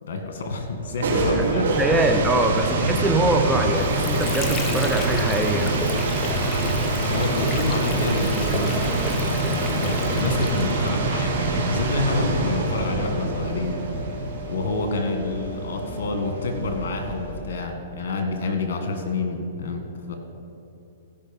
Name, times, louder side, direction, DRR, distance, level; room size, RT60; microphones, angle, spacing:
voice 1, 0.0-1.7 7.0-13.8 14.5-20.1, left 3 dB, 70° left, 5 dB, 2.0 m, -28 dB
sound 1, 0.7-17.4, right 2 dB, 75° right, 2.6 m, -25 dB
voice 2, 1.3-5.7, right 2 dB, 10° right, 3 dB, 0.8 m, -23 dB
Water / Sink (filling or washing), 3.5-11.1, left 2 dB, 20° left, 0.9 m, -33 dB
16.5 x 5.6 x 5.5 m, 2.8 s
hypercardioid pair, 135°, 0 cm